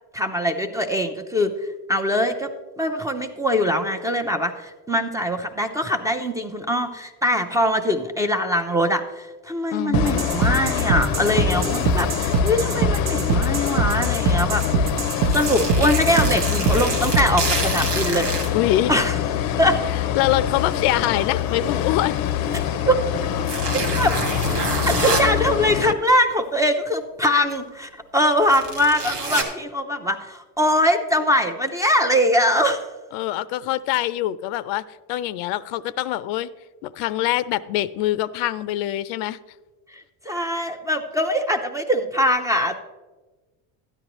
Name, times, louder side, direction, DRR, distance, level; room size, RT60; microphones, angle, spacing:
voice 1, 0.1-18.4 18.9-19.1 19.6-19.8 22.5-23.0 23.7-24.1 24.9-32.9 39.9-42.8, equal, 5° right, 5 dB, 0.5 m, -22 dB
voice 2, 9.7-10.2 18.5-18.9 20.1-22.2 33.1-34.8 35.1-36.5 36.8-39.4, left 14 dB, 90° left, 16 dB, 0.6 m, -24 dB
sound 1, 9.9-25.9, left 10 dB, 50° left, 0.6 m, -25 dB
sound 2, 9.9-17.6, right 4 dB, 45° right, 0.7 m, -23 dB
sound 3, 14.6-14.7 15.3-18.5 19.4-19.5 22.5-22.6 23.4-25.3 27.5-27.6 28.2-29.4, right 4 dB, 90° right, 2.2 m, -27 dB
12.5 x 9.8 x 3.0 m, 1.2 s
cardioid pair, 130°, 47 cm